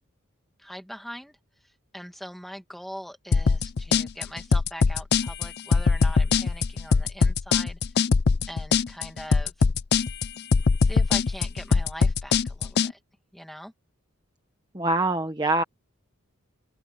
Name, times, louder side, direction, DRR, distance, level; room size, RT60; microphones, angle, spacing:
voice 1, 0.6-7.8 8.5-9.7 10.8-13.0 13.3-13.7, equal, ahead, 2.3 m, -42 dB
sound 1, 3.3-12.9, left 5 dB, 45° left, 0.5 m, -22 dB
voice 2, 14.7-15.6, right 2 dB, 20° right, 1.2 m, -24 dB
open air
head